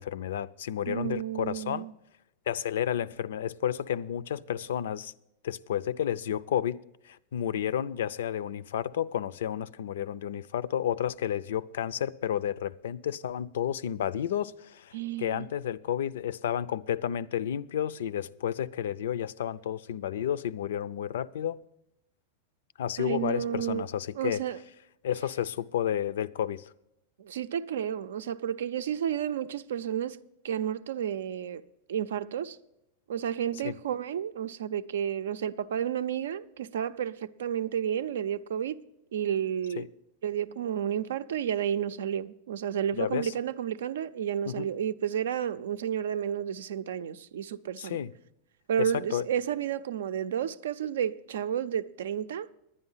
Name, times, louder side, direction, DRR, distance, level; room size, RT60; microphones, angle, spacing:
voice 1, 0.0-1.9 2.5-5.1 5.4-6.8 7.0-14.9 15.2-21.6 22.8-24.4 25.0-26.6 33.6-33.8 39.8-39.9 42.9-43.3 44.5-44.7 47.8-48.1 48.8-49.3, left 10 dB, 85° left, 0.4 m, -31 dB
voice 2, 0.9-1.9 14.9-15.5 23.0-23.8 24.2-24.6 27.2-30.2 30.4-31.6 31.9-32.6 33.1-38.8 39.1-39.8 40.2-48.0 48.7-52.5, right 9 dB, 90° right, 0.5 m, -31 dB
10.5 x 9.8 x 5.6 m
supercardioid pair, 140°, 0 cm